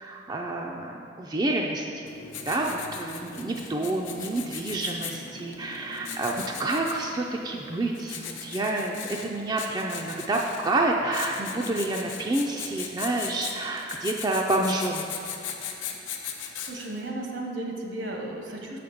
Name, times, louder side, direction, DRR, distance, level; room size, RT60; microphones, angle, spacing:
voice 1, 0.0-2.0 2.4-15.1, right 2 dB, 20° right, 0 dB, 0.4 m, -28 dB
Writing, 2.1-17.0, left 6 dB, 90° left, 0.8 m, -39 dB
voice 2, 16.6-18.8, right 1 dB, 70° right, 0 dB, 1.2 m, -34 dB
6.4 x 5.1 x 7.0 m, 2.5 s
head